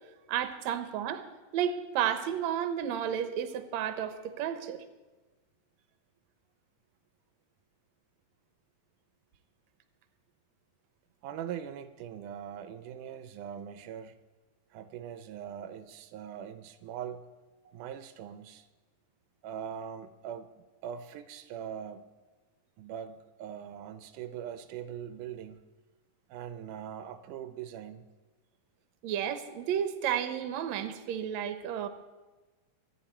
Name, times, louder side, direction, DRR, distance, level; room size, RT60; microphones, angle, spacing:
voice 1, 0.3-1.2 1.5-4.8 29.0-31.9, right 9 dB, 70° right, 10 dB, 2.1 m, -32 dB
voice 2, 11.2-14.2 14.7-17.3 17.7-18.7 19.4-22.1 22.8-25.6 26.3-28.1, right 9 dB, 85° right, 11 dB, 2.2 m, -41 dB
24.5 x 9.6 x 4.4 m, 1.2 s
omnidirectional pair, 3.5 m